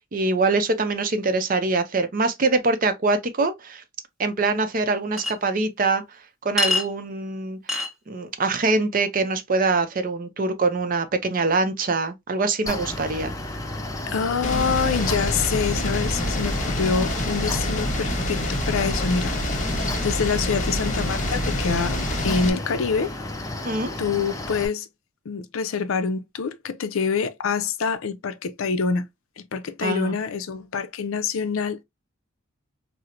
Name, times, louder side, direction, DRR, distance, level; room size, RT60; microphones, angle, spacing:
voice 1, 0.1-3.8 4.2-6.0 6.4-7.6 8.1-13.3 23.6-23.9 29.8-30.2, right 3 dB, 40° right, 0.5 m, -24 dB
Chink clink, 5.2-5.3 6.6-6.9 7.7-7.9, left 3 dB, ahead, 1.0 m, -23 dB
Mechanical fan, 12.7-24.7, left 1 dB, 15° left, 0.5 m, -32 dB
voice 2, 14.1-19.3 20.0-22.0 22.2-23.1 23.5-23.6 24.0-24.9 25.3-29.1 29.4-31.8, left 5 dB, 80° left, 0.5 m, -26 dB
sound 1, 14.4-22.5, left 1 dB, 35° left, 0.8 m, -27 dB
4.2 x 2.0 x 2.4 m
head